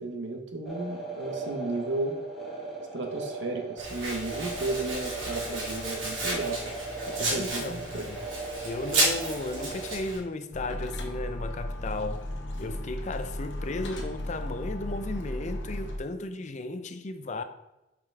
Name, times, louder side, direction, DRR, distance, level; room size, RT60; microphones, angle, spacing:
voice 1, 0.0-2.2 2.9-6.8 7.2-8.1, right 2 dB, 65° right, 1.1 m, -34 dB
sound 1, 0.6-10.0, right 3 dB, ahead, 1.6 m, -38 dB
Domestic sounds home sounds, 3.8-10.2, right 1 dB, 85° right, 2.6 m, -32 dB
voice 2, 7.2-8.2 8.6-12.3 12.6-17.4, left 2 dB, 40° left, 0.5 m, -35 dB
sound 2, 10.5-16.0, left 1 dB, 65° left, 1.0 m, -35 dB
5.5 x 5.1 x 4.6 m
head